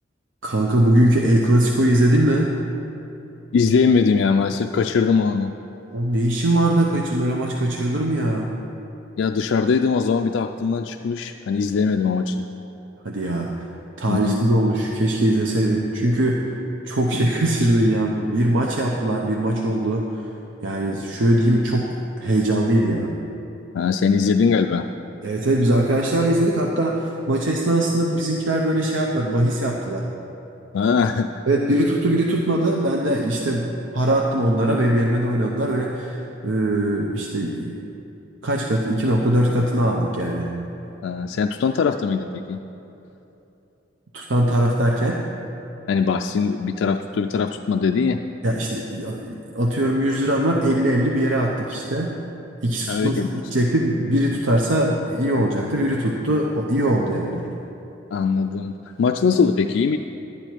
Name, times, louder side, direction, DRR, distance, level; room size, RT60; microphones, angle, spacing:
voice 1, 0.4-2.6 5.9-8.5 13.0-13.5 14.0-16.4 16.8-20.2 20.6-23.2 25.2-30.1 31.5-37.8 38.4-40.5 44.1-45.2 48.4-52.2 52.6-57.5, right 1 dB, 80° right, -1 dB, 0.8 m, -21 dB
voice 2, 3.5-5.5 9.2-12.5 14.1-14.4 17.1-17.2 23.7-24.9 30.7-31.4 41.0-42.6 45.9-48.2 52.9-53.4 58.1-58.7 59.0-60.0, left 5 dB, 75° left, 5 dB, 0.3 m, -21 dB
11.5 x 9.8 x 4.5 m, 2.9 s
head